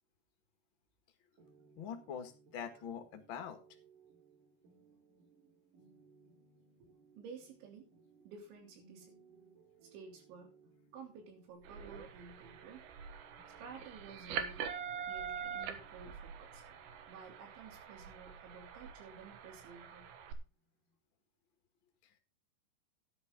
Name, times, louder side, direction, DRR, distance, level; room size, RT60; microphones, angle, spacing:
sound 1, 1.4-20.9, right 5 dB, 50° right, 3.8 m, -66 dB
voice 1, 1.8-3.6, left 7 dB, 60° left, 6 dB, 1.2 m, -44 dB
voice 2, 7.2-7.9 8.3-9.2 9.8-10.5 10.9-12.9 13.6-14.7 15.1-16.6 17.1-20.1, right 5 dB, 90° right, 4 dB, 5.4 m, -53 dB
sound 2, 11.6-20.3, right 7 dB, 70° right, 2.8 m, -45 dB
12.0 x 10.5 x 3.7 m, 0.31 s
omnidirectional pair, 5.1 m